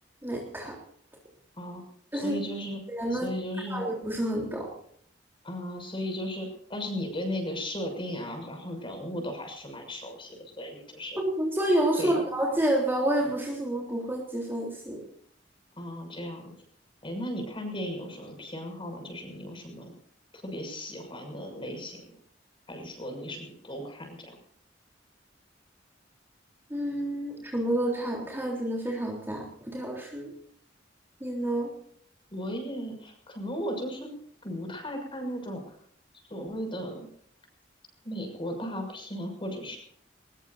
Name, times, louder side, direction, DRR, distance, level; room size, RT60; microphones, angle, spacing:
voice 1, 0.2-0.8 2.1-2.4 2.9-3.3 3.7-4.7 11.2-15.0 26.7-30.3 31.2-31.7, right 1 dB, 10° right, 0 dB, 3.6 m, -29 dB
voice 2, 2.1-2.8 3.1-3.8 5.4-11.2 12.0-12.2 15.8-16.5 17.0-19.9 20.4-22.1 22.7-24.4 32.3-34.1 34.4-35.6 36.3-37.1 38.0-39.8, equal, 30° left, 4 dB, 6.5 m, -36 dB
22.5 x 21.0 x 2.7 m, 0.62 s
head